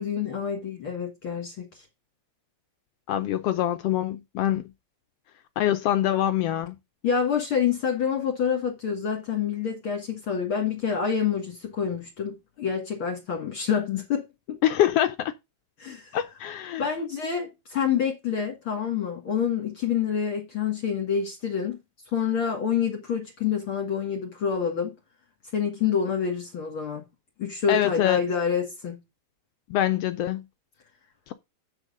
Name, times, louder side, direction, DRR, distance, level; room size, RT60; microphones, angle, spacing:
voice 1, 0.0-1.9 7.0-14.6 15.8-16.2 16.8-21.8 22.1-25.0 25.5-27.0 27.4-29.0, left 7 dB, 50° left, 2.3 m, -27 dB
voice 2, 3.1-4.6 5.6-6.7 14.6-15.3 16.1-16.8 27.7-28.2 29.7-30.4, left 12 dB, 80° left, 1.4 m, -24 dB
8.1 x 6.3 x 5.0 m
omnidirectional pair, 3.3 m